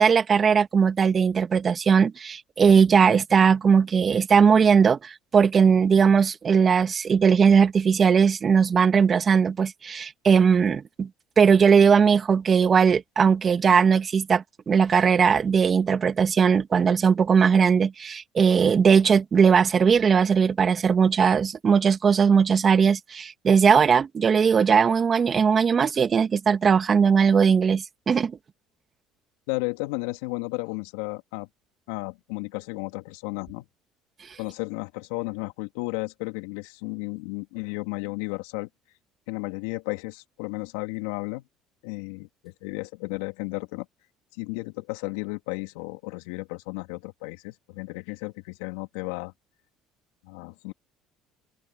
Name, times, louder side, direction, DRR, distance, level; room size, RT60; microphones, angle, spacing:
voice 1, 0.0-11.1 11.4-28.3, right 6 dB, 40° right, 2.5 m, -19 dB
voice 2, 29.5-31.5 31.9-33.7 34.4-38.7 39.3-41.4 41.8-43.9 44.4-49.3 50.2-50.7, left 25 dB, 80° left, 2.9 m, -33 dB
open air
hypercardioid pair, 70°, 0 cm